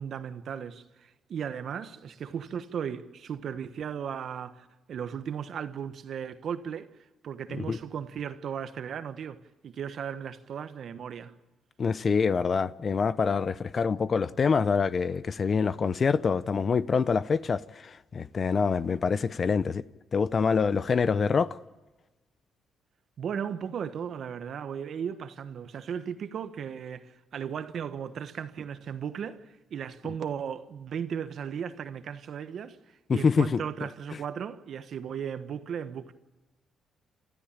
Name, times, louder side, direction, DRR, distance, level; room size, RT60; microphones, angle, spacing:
voice 1, 0.0-6.9 7.2-9.4 9.6-11.3 23.2-29.4 29.7-32.8 33.1-36.2, right 8 dB, 60° right, 1.2 m, -36 dB
voice 2, 11.8-19.8 20.1-21.6 33.1-33.6, left 5 dB, 40° left, 0.7 m, -26 dB
29.0 x 13.5 x 8.8 m
cardioid pair, 90°, 0 cm